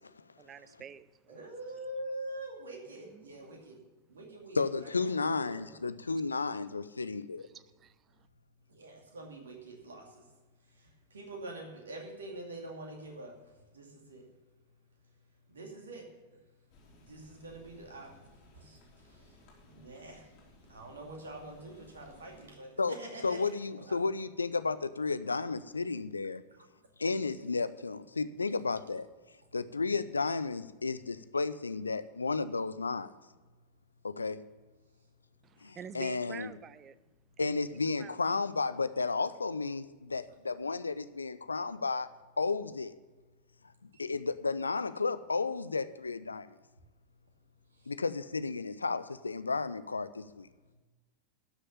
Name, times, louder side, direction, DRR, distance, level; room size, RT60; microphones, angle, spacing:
voice 1, 0.4-1.5 3.0-3.3 7.4-8.3 35.4-37.0 37.4-38.2, right 8 dB, 25° right, 0.5 m, -49 dB
voice 2, 1.3-3.8 4.1-5.2 5.4-5.7 8.4-23.4 23.8-24.0 26.6-26.7 33.5-34.1 34.8-35.6 37.2-37.4 43.3-44.0 46.9-47.9 50.5-50.7, right 1 dB, 70° right, 2.3 m, -47 dB
voice 3, 4.5-7.5 22.8-23.0 23.2-26.4 27.0-29.1 29.5-33.1 34.0-34.4 35.6-36.5 37.4-42.1 42.4-42.9 43.8-46.5 47.9-50.5, left 4 dB, 80° left, 0.5 m, -33 dB
sound 1, 16.7-22.5, left 2 dB, 45° left, 3.3 m, -60 dB
12.5 x 6.6 x 6.9 m
figure-of-eight pair, 90°, 0 cm